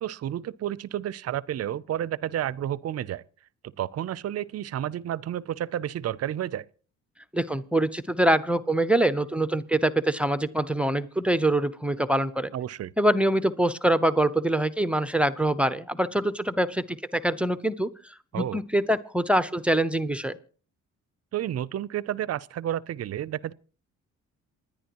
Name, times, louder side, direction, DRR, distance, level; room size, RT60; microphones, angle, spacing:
voice 1, 0.0-3.2 3.8-6.7 12.5-12.9 18.3-18.6 21.3-23.5, right 11 dB, 55° right, 0.6 m, -31 dB
voice 2, 7.3-12.5 13.0-17.9 18.3-20.4, right 1 dB, 5° right, 0.7 m, -24 dB
27.5 x 10.0 x 3.0 m
cardioid pair, 90°, 30 cm